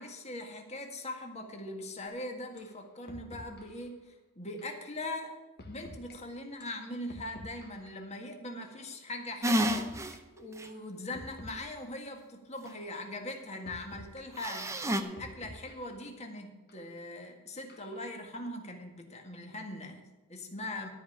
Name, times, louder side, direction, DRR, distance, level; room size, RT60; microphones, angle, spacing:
voice 1, 0.0-5.4 5.6-9.9 10.4-20.9, left 1 dB, 30° left, 3 dB, 1.7 m, -41 dB
sound 1, 2.1-2.2 2.6-2.8 3.1-3.8 4.6-4.8 5.6-6.1 6.6-8.0 8.6-8.8 9.6-10.2 10.6-10.8 11.1-12.0 12.6-12.9 13.6-14.2 14.7-16.0 16.7-16.8 17.7-18.1, left 1 dB, 50° left, 1.5 m, -50 dB
sound 2, 9.4-10.1 10.6-10.7 14.4-15.0, equal, 15° right, 0.7 m, -29 dB
13.0 x 5.1 x 8.5 m, 1.2 s
head